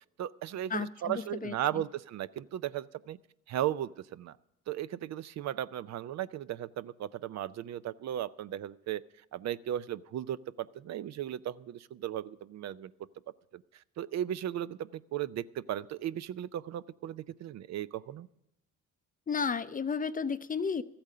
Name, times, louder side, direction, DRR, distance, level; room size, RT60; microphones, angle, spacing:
voice 1, 0.2-3.2 3.5-4.4 4.7-9.0 9.3-12.9 13.5-18.3, right 11 dB, 60° right, 16 dB, 0.5 m, -36 dB
voice 2, 0.7-1.5 19.3-20.8, left 5 dB, 30° left, 14 dB, 0.5 m, -32 dB
13.5 x 8.7 x 6.6 m, 0.88 s
cardioid pair, 90°, 30 cm